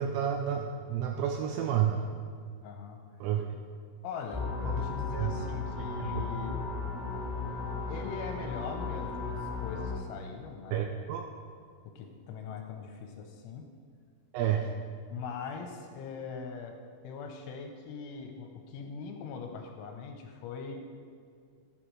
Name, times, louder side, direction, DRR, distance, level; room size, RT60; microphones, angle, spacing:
voice 1, 0.0-2.1 3.2-3.6 4.6-4.8 5.2-5.3 6.0-6.3 10.7-11.2 14.3-14.7, right 9 dB, 85° right, 4 dB, 2.6 m, -30 dB
voice 2, 2.6-3.0 4.0-6.5 7.9-10.8 11.8-13.7 15.1-16.8 17.0-20.8, left 5 dB, 80° left, 4 dB, 3.0 m, -41 dB
sound 1, 4.3-10.0, left 4 dB, 5° left, 0.6 m, -35 dB
13.5 x 8.3 x 3.1 m, 2.2 s
omnidirectional pair, 5.6 m